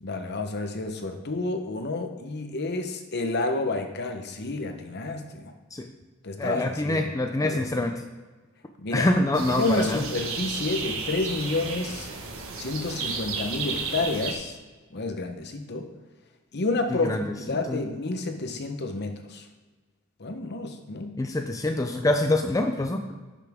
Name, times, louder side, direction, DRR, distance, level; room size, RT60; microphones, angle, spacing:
voice 1, 0.0-5.5 6.2-7.1 7.4-7.8 8.8-9.1 9.5-12.1 12.6-14.5 14.9-15.9 16.5-19.4 20.2-21.2, left 2 dB, 50° left, 6 dB, 0.9 m, -30 dB
voice 2, 6.4-8.0 8.9-10.0 16.9-17.8 21.2-23.0, left 1 dB, 15° left, 5 dB, 0.4 m, -25 dB
sound 1, 9.3-14.3, right 4 dB, 70° right, 1.4 m, -33 dB
11.0 x 6.0 x 3.6 m, 1.3 s
head